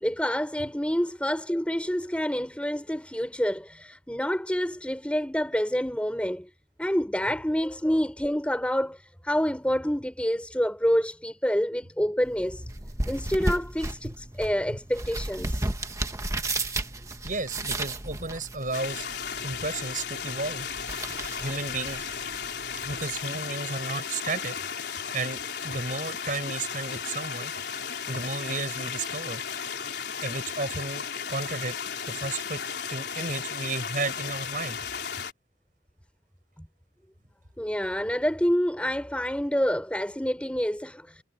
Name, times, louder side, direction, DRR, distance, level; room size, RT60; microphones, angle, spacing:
voice 1, 0.0-6.5 6.8-12.6 13.1-15.7 36.6-36.7 37.6-41.2, equal, 5° left, 4.4 m, -27 dB
sound 1, 12.2-23.2, right 2 dB, 15° right, 1.4 m, -34 dB
voice 2, 17.2-19.1 19.4-20.7 21.4-22.1 22.8-24.6 25.1-27.5 28.1-29.4 30.2-31.8 32.1-32.6 32.9-34.9, right 3 dB, 45° right, 5.9 m, -33 dB
sound 2, 18.7-35.3, left 7 dB, 60° left, 4.6 m, -35 dB
head